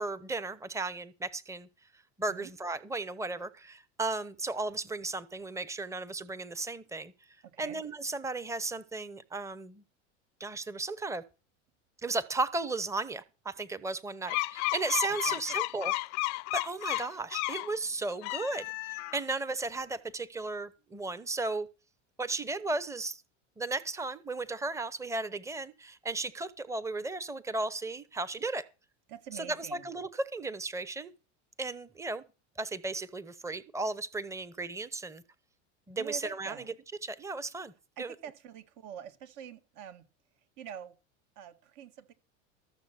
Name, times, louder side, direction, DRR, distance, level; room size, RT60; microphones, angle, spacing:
voice 1, 0.0-1.7 2.2-7.1 7.6-9.8 10.4-11.2 12.0-15.9 16.5-21.7 22.2-23.2 23.6-28.6 29.3-31.1 31.6-32.2 32.6-35.2 35.9-36.6 37.0-37.7 38.0-38.1, right 3 dB, 10° right, 0.9 m, -35 dB
voice 2, 7.4-7.8 15.1-15.4 29.1-29.9 36.0-36.7 38.0-40.1 40.6-41.0 41.4-42.1, right 9 dB, 55° right, 1.8 m, -45 dB
sound 1, 14.3-17.7 18.1-19.3, left 24 dB, 50° left, 0.5 m, -33 dB
14.0 x 7.1 x 5.9 m
supercardioid pair, 115°, 35 cm